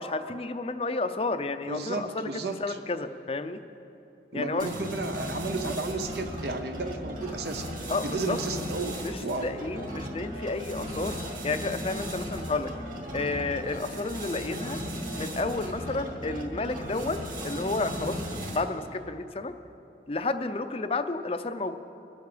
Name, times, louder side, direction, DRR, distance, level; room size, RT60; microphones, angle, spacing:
voice 1, 0.0-2.3 2.6-3.6 4.3-4.7 7.9-8.4 9.0-11.2 11.4-12.7 13.1-14.8 15.2-18.2 18.5-19.5 20.1-21.8, left 3 dB, 35° left, 10 dB, 0.5 m, -31 dB
voice 2, 1.7-2.8 4.3-7.7 8.0-9.5, right 3 dB, 65° right, 6 dB, 0.8 m, -33 dB
sound 1, 4.6-18.8, equal, 50° right, 2.3 m, -36 dB
23.5 x 8.2 x 5.0 m, 2.9 s
head